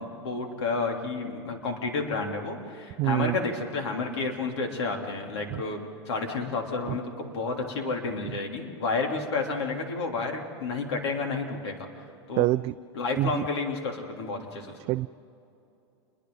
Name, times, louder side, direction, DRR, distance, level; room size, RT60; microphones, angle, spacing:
voice 1, 0.0-11.9 12.3-12.5 12.9-14.7, left 3 dB, 75° left, 2 dB, 3.4 m, -31 dB
voice 2, 3.0-3.3 12.4-12.7 13.2-13.3 14.9-15.1, right 18 dB, 45° right, 12 dB, 0.4 m, -24 dB
30.0 x 22.5 x 4.0 m, 2.7 s
hypercardioid pair, 110°, 14 cm